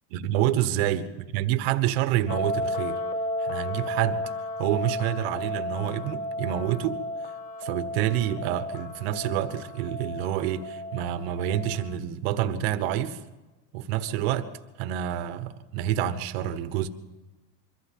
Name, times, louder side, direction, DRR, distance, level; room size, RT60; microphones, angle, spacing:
voice 1, 0.1-3.0 3.4-4.2 4.6-7.0 7.6-13.2 13.7-14.5 14.8-16.9, right 11 dB, 45° right, 1.2 m, -28 dB
sound 1, 2.3-12.0, left 1 dB, 20° left, 0.7 m, -33 dB
23.5 x 15.0 x 7.6 m
supercardioid pair, 170°, 44 cm